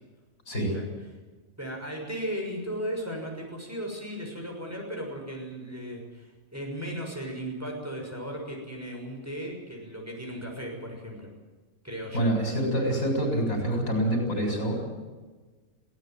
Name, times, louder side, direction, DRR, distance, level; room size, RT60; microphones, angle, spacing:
voice 1, 0.5-0.8 1.6-11.3 11.8-12.3, equal, 10° right, 0 dB, 6.3 m, -36 dB
voice 2, 12.1-14.8, right 1 dB, 85° left, 2 dB, 7.7 m, -26 dB
21.5 x 18.0 x 9.2 m, 1.3 s
omnidirectional pair, 1.4 m